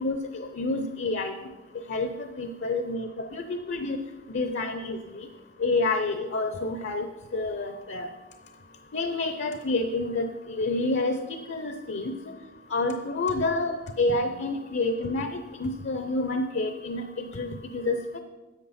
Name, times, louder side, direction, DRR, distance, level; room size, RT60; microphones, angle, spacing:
voice 1, 0.0-1.3 1.9-4.0 4.3-5.3 5.6-7.1 7.3-8.1 8.9-11.2 11.5-12.1 12.7-18.2, left 2 dB, 55° left, 7 dB, 0.6 m, -28 dB
11.0 x 7.9 x 4.2 m, 1.2 s
head